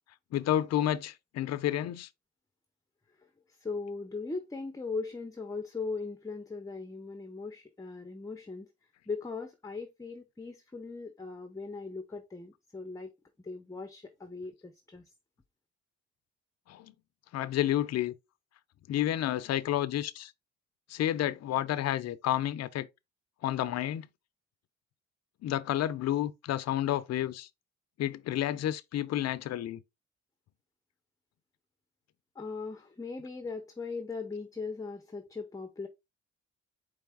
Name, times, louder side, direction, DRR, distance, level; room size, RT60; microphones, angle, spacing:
voice 1, 0.3-2.1 16.7-16.9 17.3-18.1 18.9-20.3 20.9-22.9 23.4-24.1 25.4-27.5 28.0-29.8, left 12 dB, 60° left, 0.5 m, -30 dB
voice 2, 3.2-8.7 9.1-13.1 13.4-15.1 32.3-35.9, left 4 dB, 10° left, 0.7 m, -39 dB
4.7 x 3.2 x 3.4 m
cardioid pair, 90°, 30 cm